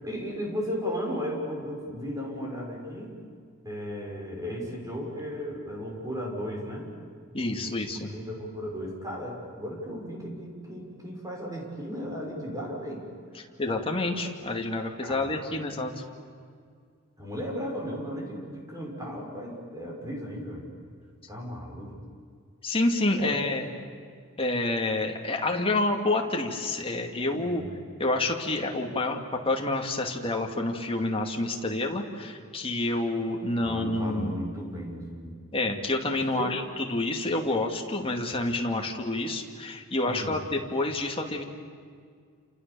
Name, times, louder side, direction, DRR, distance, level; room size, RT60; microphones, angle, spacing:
voice 1, 0.0-3.1 3.6-6.9 7.5-7.7 8.1-13.0 15.0-15.7 17.2-20.7 21.3-21.9 23.2-23.4 27.3-27.7 33.6-35.4 36.0-36.6 40.0-40.3, equal, 15° right, -1 dB, 6.2 m, -35 dB
voice 2, 7.3-8.2 13.6-15.9 22.6-23.7 24.4-27.6 28.0-34.3 35.5-41.4, left 2 dB, 25° left, 2 dB, 2.5 m, -28 dB
29.5 x 28.0 x 7.1 m, 2.1 s
head